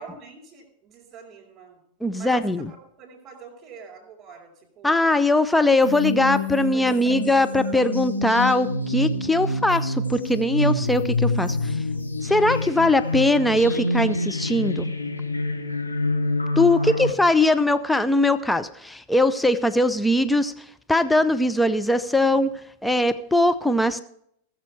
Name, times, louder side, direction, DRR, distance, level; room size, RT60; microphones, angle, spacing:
voice 1, 0.0-1.8 2.2-5.1 6.4-6.5 6.7-7.1 7.6-7.9 16.7-17.1, right 5 dB, 30° right, -5 dB, 4.2 m, -45 dB
voice 2, 2.0-2.7 4.8-11.8 12.2-14.9 16.6-20.5 20.9-22.5 22.8-24.0, left 1 dB, 5° left, 11 dB, 0.6 m, -21 dB
sound 1, 5.8-17.1, left 2 dB, 85° left, 1.2 m, -26 dB
18.5 x 7.3 x 4.7 m, 0.70 s
figure-of-eight pair, 90°, 0 cm